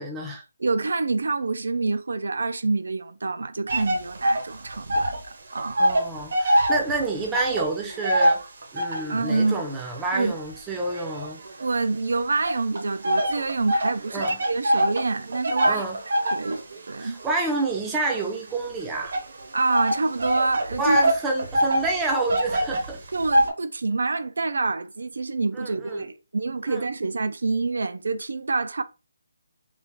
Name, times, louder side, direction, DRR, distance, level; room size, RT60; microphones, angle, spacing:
voice 1, 0.0-0.4 5.8-8.4 8.7-11.4 14.1-14.4 15.6-16.0 17.0-19.1 20.8-23.0 25.5-26.0 26.7-26.8, right 3 dB, 5° right, 0.5 m, -28 dB
voice 2, 0.6-5.8 9.1-9.7 10.1-10.4 11.6-15.8 16.3-17.2 19.5-21.0 23.1-28.8, right 3 dB, 75° right, 0.4 m, -27 dB
versi cigni, 3.7-5.3 5.5-9.2 9.8-11.8 12.5-23.5, right 1 dB, 55° right, 0.9 m, -25 dB
3.3 x 2.5 x 3.5 m
hypercardioid pair, 170°, 0 cm